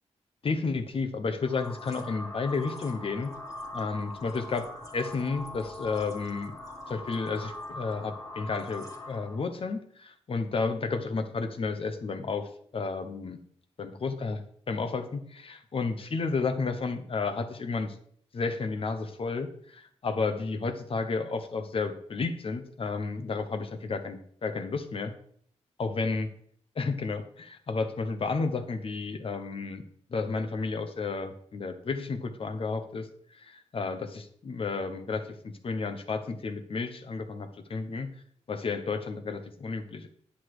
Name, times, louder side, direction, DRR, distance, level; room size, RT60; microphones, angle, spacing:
voice 1, 0.4-3.3 3.7-6.5 6.9-12.5 12.7-13.4 13.8-18.0 18.3-25.1 25.8-26.3 26.8-29.8 30.1-33.1 33.3-38.1 38.5-40.1, left 4 dB, 50° left, 8 dB, 1.1 m, -32 dB
sound 1, 1.4-9.5, left 2 dB, 25° left, 2.0 m, -42 dB
9.9 x 6.3 x 4.9 m, 0.63 s
cardioid pair, 85°, 12 cm